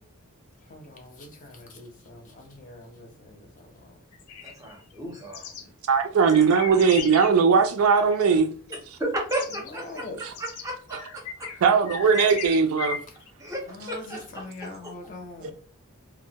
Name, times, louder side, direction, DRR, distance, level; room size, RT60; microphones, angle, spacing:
voice 1, 0.6-3.9 9.5-10.3 13.6-15.5, left 2 dB, 35° left, 0.5 m, -43 dB
sound 1, 4.1-5.6 6.2-7.4 9.0-9.1 9.3-13.3, left 7 dB, 85° left, 0.4 m, -37 dB
voice 2, 4.4-5.5 6.7-6.8 9.0-9.8 10.6-11.0 13.4-14.4, right 1 dB, 15° right, 0.6 m, -32 dB
voice 3, 5.9-8.5 10.2-10.3 10.9-11.0 11.6-13.0 15.4-15.5, right 5 dB, 75° right, 0.3 m, -19 dB
2.2 x 2.0 x 2.8 m
head